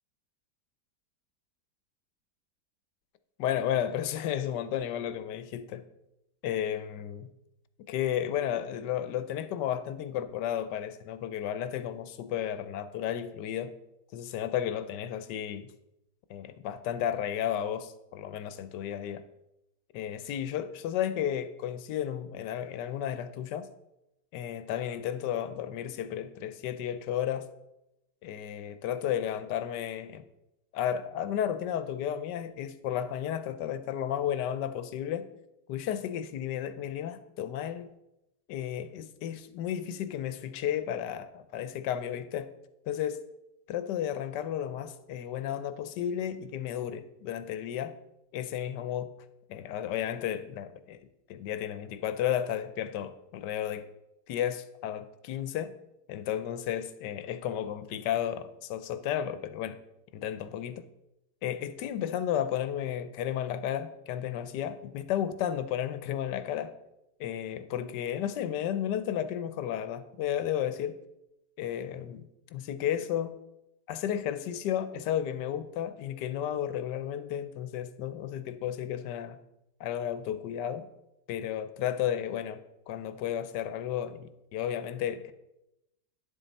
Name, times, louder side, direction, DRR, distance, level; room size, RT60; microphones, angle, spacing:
voice 1, 3.4-5.8 6.4-7.3 7.9-13.7 14.1-15.7 16.3-19.2 19.9-23.7 24.3-27.5 28.2-30.2 30.7-35.3 35.7-37.9 38.5-42.5 42.9-43.2 43.7-48.0 48.3-49.1 49.5-51.0 51.3-53.8 54.3-55.7 56.1-59.8 60.1-60.8 61.4-66.7 67.2-71.0 71.6-72.2 72.5-73.4 73.9-79.4 79.8-80.9 81.3-82.6 82.9-85.3, left 10 dB, 85° left, 12 dB, 1.3 m, -33 dB
10.5 x 7.4 x 4.1 m, 0.89 s
omnidirectional pair, 1.8 m